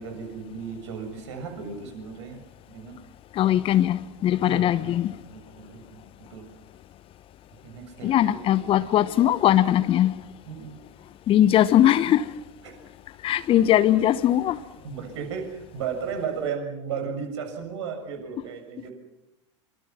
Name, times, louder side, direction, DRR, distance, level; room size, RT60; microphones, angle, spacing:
voice 1, 0.0-2.4 2.7-3.0 4.4-5.0 5.3-6.0 6.3-6.5 7.6-8.6 10.5-10.8 12.6-12.8 14.8-18.9, right 6 dB, 65° right, 7.1 m, -35 dB
voice 2, 3.4-5.1 8.0-10.1 11.3-12.2 13.2-14.6, left 12 dB, 35° left, 1.1 m, -20 dB
27.0 x 26.5 x 6.1 m
figure-of-eight pair, 80°, 16 cm